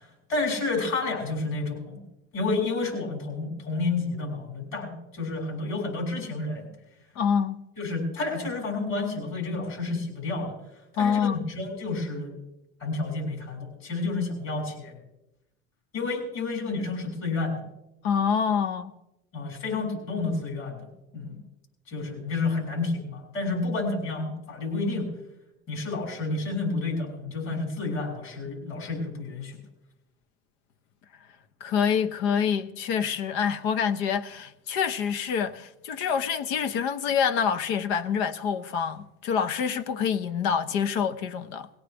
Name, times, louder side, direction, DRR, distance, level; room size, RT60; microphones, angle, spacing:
voice 1, 0.3-2.0 2.3-6.7 7.8-10.5 10.9-12.3 12.8-15.0 15.9-17.6 19.3-20.9 21.1-21.4 21.9-25.1 25.7-29.6, left 3 dB, 55° left, 7.0 m, -30 dB
voice 2, 7.1-7.6 11.0-11.5 18.0-18.9 31.6-41.7, left 7 dB, 75° left, 1.0 m, -26 dB
20.0 x 17.0 x 3.5 m
supercardioid pair, 105°, 32 cm